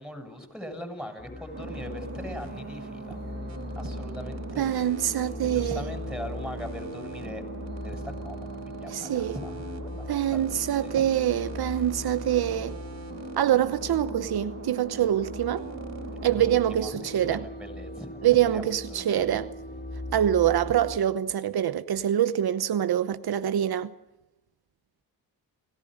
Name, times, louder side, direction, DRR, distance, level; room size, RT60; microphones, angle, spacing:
voice 1, 0.0-3.2 3.8-4.8 5.2-7.4 7.8-11.0 16.3-19.4, equal, ahead, 7.3 m, -41 dB
sound 1, 1.2-21.0, left 1 dB, 25° left, 4.7 m, -39 dB
sound 2, 1.5-16.6, right 4 dB, 45° right, 3.7 m, -41 dB
voice 2, 4.6-5.9 8.9-9.4 10.1-12.8 13.4-15.6 16.2-17.4 18.2-19.5 20.1-23.9, right 11 dB, 75° right, 1.0 m, -25 dB
29.0 x 18.0 x 6.6 m
cardioid pair, 75°, 37 cm